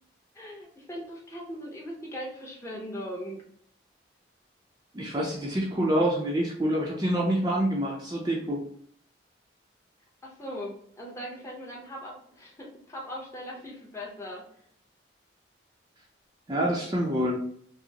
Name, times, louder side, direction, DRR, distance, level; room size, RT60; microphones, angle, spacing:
voice 1, 0.3-3.4 10.2-14.4, equal, 15° left, -2 dB, 0.8 m, -39 dB
voice 2, 4.9-8.7 16.5-17.4, right 1 dB, 20° right, -2 dB, 0.5 m, -27 dB
4.9 x 2.0 x 2.8 m, 0.63 s
head